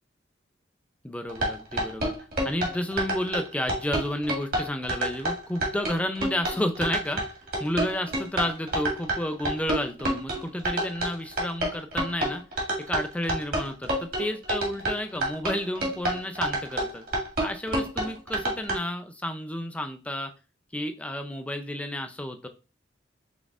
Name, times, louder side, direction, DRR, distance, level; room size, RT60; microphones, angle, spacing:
voice 1, 1.0-2.1 2.4-7.2 7.6-12.4 12.9-13.9 14.2-17.0 17.4-20.3 20.7-22.5, left 1 dB, 5° left, 7 dB, 0.4 m, -31 dB
sound 1, 1.3-18.8, right 1 dB, 50° right, 1.7 m, -28 dB
5.3 x 3.7 x 2.4 m, 0.31 s
head